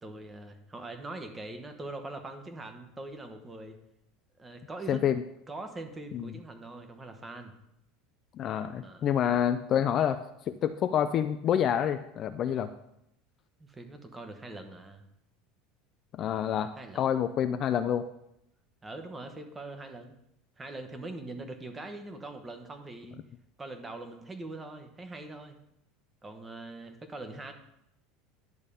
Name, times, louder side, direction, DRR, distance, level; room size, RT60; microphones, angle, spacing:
voice 1, 0.0-3.8 4.4-5.0 5.5-7.5 8.8-9.1 13.6-15.0 16.8-17.0 18.8-20.2 20.6-23.2 23.6-25.6 26.2-27.5, right 2 dB, 15° right, 6 dB, 1.0 m, -42 dB
voice 2, 4.9-5.2 6.1-6.3 8.4-10.2 10.5-12.7 16.1-18.1, left 9 dB, 35° left, 10 dB, 0.4 m, -28 dB
10.5 x 3.6 x 6.8 m, 0.80 s
supercardioid pair, 150°, 0 cm